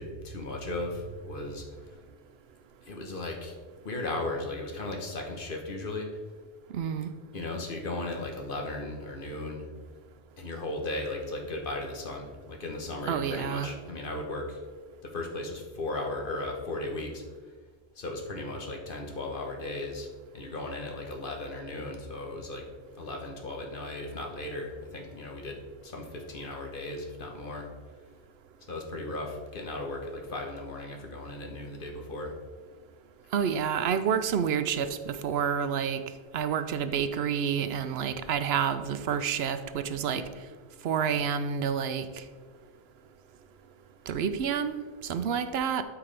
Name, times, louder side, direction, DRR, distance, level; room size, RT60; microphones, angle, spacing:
voice 1, 0.0-1.6 2.9-3.5 3.8-6.1 7.3-9.7 10.4-14.6 15.0-17.2 18.0-20.1 20.3-22.6 23.0-25.6 25.8-27.7 28.7-32.3, left 2 dB, 55° left, 2 dB, 1.3 m, -36 dB
voice 2, 6.7-7.1 13.1-13.7 33.3-36.0 36.3-40.2 40.8-42.1 44.1-45.8, right 7 dB, 80° right, 11 dB, 0.9 m, -29 dB
12.5 x 4.8 x 3.3 m, 1.4 s
omnidirectional pair, 1.1 m